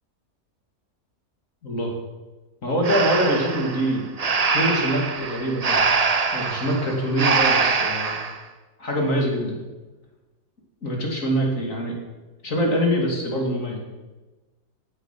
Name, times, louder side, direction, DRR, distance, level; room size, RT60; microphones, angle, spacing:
voice 1, 2.6-4.0 4.5-5.8 6.3-8.2 8.8-9.6 10.8-11.9 12.4-13.8, equal, 55° left, 0 dB, 3.0 m, -24 dB
Breathing, 2.8-8.4, right 4 dB, 35° right, 0.7 m, -23 dB
16.0 x 8.6 x 5.8 m, 1.2 s
omnidirectional pair, 1.7 m